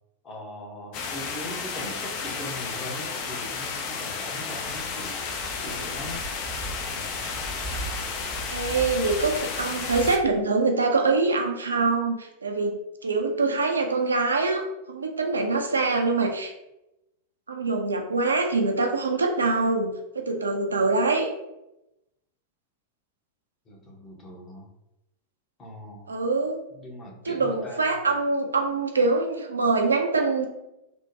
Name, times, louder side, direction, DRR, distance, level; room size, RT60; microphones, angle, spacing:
voice 1, 0.2-5.3 5.6-6.2 6.9-7.2 23.7-24.7 25.6-26.1 26.7-27.9, equal, 25° left, -1 dB, 0.9 m, -40 dB
sound 1, 0.9-10.2, left 5 dB, 45° left, 0.4 m, -33 dB
sound 2, 4.6-10.1, right 3 dB, 30° right, 0.6 m, -39 dB
voice 2, 8.5-14.6 14.9-16.5 17.5-21.3 26.1-26.6 27.2-30.5, right 3 dB, 75° right, 3 dB, 0.4 m, -24 dB
3.4 x 2.1 x 2.7 m, 0.90 s
figure-of-eight pair, 90°, 0 cm